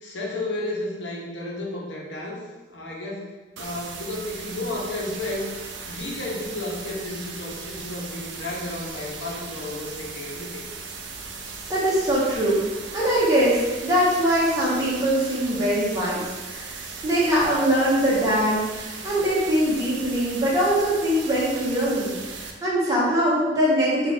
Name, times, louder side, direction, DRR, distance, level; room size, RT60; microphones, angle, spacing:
voice 1, 0.0-3.3 3.6-5.5 5.9-10.6, left 2 dB, 75° left, -3 dB, 0.8 m, -32 dB
sound 1, 3.6-22.5, right 4 dB, 75° right, 0.4 m, -37 dB
voice 2, 11.7-12.6 12.9-24.1, equal, 20° right, -7 dB, 0.8 m, -22 dB
3.1 x 2.4 x 4.0 m, 1.2 s
head